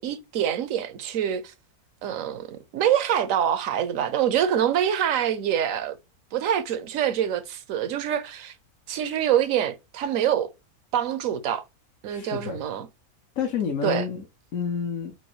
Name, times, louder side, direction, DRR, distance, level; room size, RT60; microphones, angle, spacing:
voice 1, 0.0-1.5 2.0-6.0 6.3-8.5 8.9-10.5 10.9-11.6 12.0-12.9 13.8-14.0, right 10 dB, 70° right, 1.0 m, -25 dB
voice 2, 12.1-12.6 13.4-14.2 14.5-15.1, left 7 dB, 65° left, 1.2 m, -29 dB
6.2 x 2.6 x 3.1 m
omnidirectional pair, 1.5 m